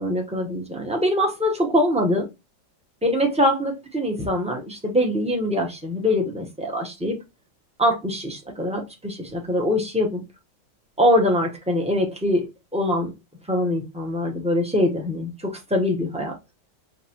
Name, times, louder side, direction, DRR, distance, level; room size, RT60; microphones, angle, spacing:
voice 1, 0.0-2.3 3.0-7.2 7.8-10.2 11.0-12.5 12.7-13.1 13.5-16.3, left 1 dB, 10° right, 0.4 m, -23 dB
6.5 x 2.6 x 2.8 m
omnidirectional pair, 2.0 m